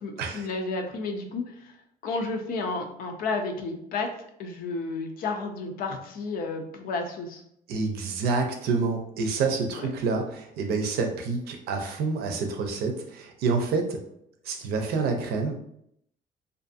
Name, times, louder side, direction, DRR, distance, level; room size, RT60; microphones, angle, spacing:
voice 1, 0.0-1.8 2.0-4.1 4.4-7.4 9.8-9.9, left 3 dB, 70° left, 4 dB, 0.5 m, -32 dB
voice 2, 7.7-14.0 14.4-15.6, right 4 dB, 80° right, 4 dB, 0.5 m, -28 dB
2.5 x 2.5 x 2.5 m, 0.72 s
cardioid pair, 135°, 16 cm